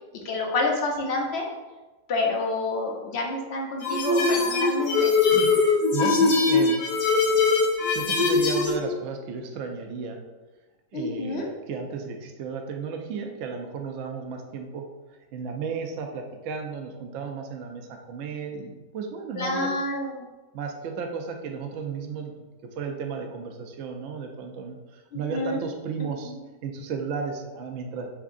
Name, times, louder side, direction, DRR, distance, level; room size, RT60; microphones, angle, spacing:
voice 1, 0.2-1.5 2.1-5.1 10.9-11.5 19.3-20.2 25.1-25.6 26.0-26.4, left 2 dB, 55° left, 0 dB, 0.7 m, -28 dB
sound 1, 3.8-8.7, left 4 dB, 80° left, 1.4 m, -21 dB
voice 2, 5.9-6.8 7.9-10.2 10.9-14.8 15.3-19.7 20.5-22.4 22.8-26.3 26.6-28.1, right 5 dB, 70° right, 3 dB, 0.8 m, -34 dB
4.6 x 3.5 x 2.5 m, 1.2 s
omnidirectional pair, 1.8 m